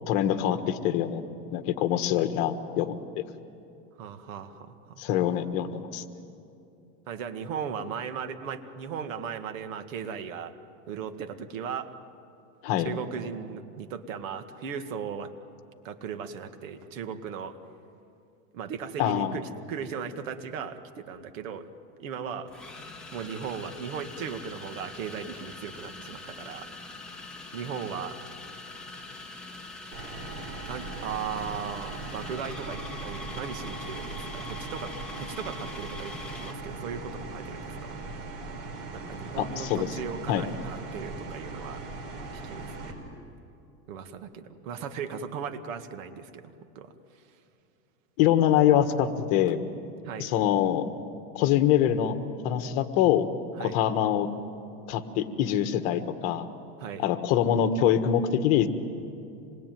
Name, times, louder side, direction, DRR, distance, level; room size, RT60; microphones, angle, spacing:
voice 1, 0.1-1.2 1.5-3.0 5.0-6.0 12.6-12.9 19.0-19.4 39.4-39.9 40.3-40.4 48.2-49.6 50.2-50.8 51.3-52.2 52.4-53.3 53.6-54.3 54.9-56.4 57.0-58.7, left 10 dB, 50° left, 9 dB, 1.5 m, -24 dB
voice 2, 4.0-5.0 7.1-10.5 10.9-11.9 12.8-15.3 15.8-17.6 18.5-21.7 22.0-22.5 23.1-26.7 27.5-28.2 30.6-38.0 38.9-41.8 42.4-42.9 43.9-47.2 50.0-50.3 53.6-53.8 56.8-57.0, right 6 dB, 75° right, 8 dB, 2.0 m, -37 dB
sound 1, 21.1-21.3 22.5-36.6, left 3 dB, ahead, 2.1 m, -43 dB
sound 2, 29.9-42.9, right 3 dB, 50° right, 5.6 m, -39 dB
26.5 x 21.0 x 9.3 m, 2.7 s
supercardioid pair, 155°, 39 cm